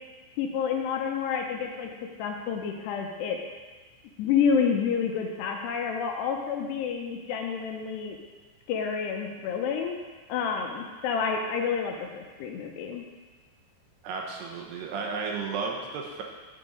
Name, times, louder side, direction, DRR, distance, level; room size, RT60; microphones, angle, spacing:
voice 1, 0.4-1.9 2.2-3.4 4.2-8.2 8.7-9.9 10.3-13.0, left 6 dB, 80° left, 2 dB, 2.8 m, -29 dB
voice 2, 14.0-16.2, right 4 dB, 75° right, 1 dB, 2.9 m, -33 dB
12.0 x 5.9 x 5.1 m, 1.3 s
omnidirectional pair, 5.1 m